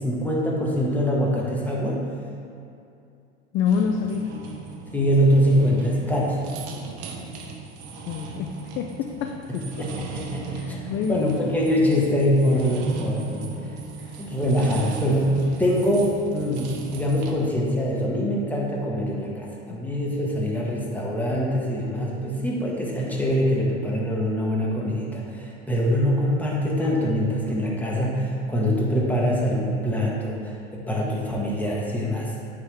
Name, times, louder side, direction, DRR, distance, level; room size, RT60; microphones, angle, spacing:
voice 1, 0.0-2.0 4.9-6.4 9.5-10.8 11.1-13.7 14.2-32.3, equal, 5° left, -4 dB, 1.4 m, -24 dB
voice 2, 3.5-4.5 8.0-9.7 10.5-11.3 14.0-14.3 14.7-14.8 19.7-19.8, left 7 dB, 35° left, 4 dB, 0.4 m, -28 dB
sound 1, 3.7-17.3, right 4 dB, 45° right, 0.8 m, -37 dB
8.9 x 3.6 x 3.5 m, 2.5 s
hypercardioid pair, 85°, 33 cm